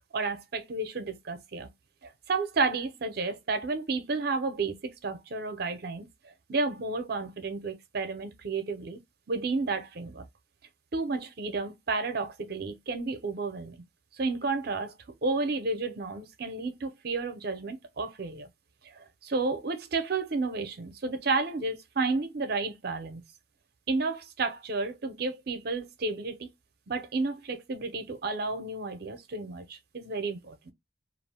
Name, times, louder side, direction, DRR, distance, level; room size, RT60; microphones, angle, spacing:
voice 1, 0.1-1.7 2.0-9.0 9.3-10.2 10.9-13.8 14.2-14.9 15.2-18.5 18.8-23.2 23.9-26.5 26.9-30.7, right 3 dB, 55° right, 0.5 m, -32 dB
2.4 x 2.1 x 3.3 m
head